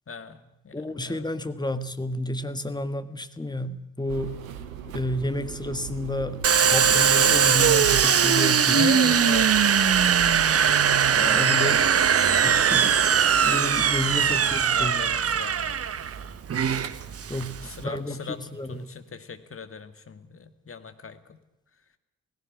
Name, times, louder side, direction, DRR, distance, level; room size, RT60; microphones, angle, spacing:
voice 1, 0.1-1.3 4.8-4.9 8.7-9.5 14.1-15.8 17.6-21.4, left 5 dB, 35° left, 9 dB, 2.1 m, -37 dB
voice 2, 0.7-4.4 4.9-8.9 11.1-11.9 12.4-15.0 17.3-18.9, left 1 dB, 10° left, 11 dB, 1.6 m, -31 dB
sound 1, 4.1-18.0, right 9 dB, 85° right, 1.0 m, -40 dB
Domestic sounds home sounds, 6.4-17.8, right 7 dB, 35° right, 1.1 m, -21 dB
17.5 x 16.5 x 9.6 m, 0.89 s
figure-of-eight pair, 40°, 40 cm